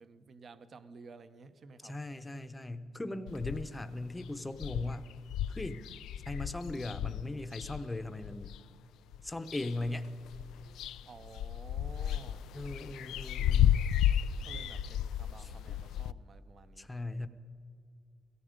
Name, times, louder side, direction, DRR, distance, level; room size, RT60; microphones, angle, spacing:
voice 1, 0.0-2.0 11.1-12.5 14.3-16.9, right 4 dB, 45° right, 12 dB, 0.7 m, -53 dB
voice 2, 1.8-5.1 5.5-5.8 6.3-8.5 9.2-10.1 12.5-13.9 15.4-15.5 16.8-17.3, left 2 dB, 15° left, 10 dB, 0.8 m, -38 dB
sound 1, 3.3-3.9 4.2-4.3 4.5-8.6 9.1-10.0 10.2-16.1, left 10 dB, 85° left, 0.3 m, -33 dB
17.0 x 14.0 x 5.2 m, 2.4 s
cardioid pair, 90°, 0 cm